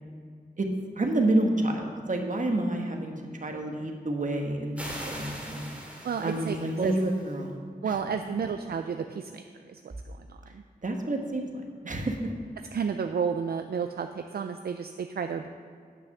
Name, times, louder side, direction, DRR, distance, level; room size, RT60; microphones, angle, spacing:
voice 1, 1.0-3.1 3.4-5.7 6.2-7.6 7.8-8.3 10.8-12.2, right 1 dB, 50° right, 3 dB, 1.3 m, -29 dB
sound 1, 4.8-7.3, equal, 10° right, 2.2 m, -41 dB
voice 2, 6.0-6.9 7.8-9.4 9.7-10.6 11.9-12.0 12.7-15.5, right 6 dB, 70° right, 7 dB, 0.4 m, -32 dB
9.3 x 5.9 x 6.6 m, 2.1 s
wide cardioid pair, 65°, 16 cm